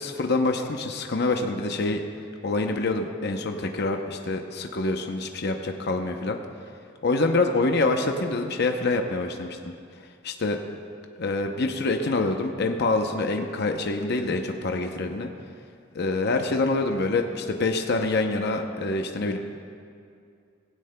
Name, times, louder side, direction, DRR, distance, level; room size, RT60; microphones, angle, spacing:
voice 1, 0.0-2.0 2.4-6.4 7.0-9.6 10.2-10.6 11.2-15.3 15.9-19.4, left 3 dB, 55° left, 4 dB, 0.7 m, -26 dB
17.5 x 16.0 x 2.2 m, 2.4 s
head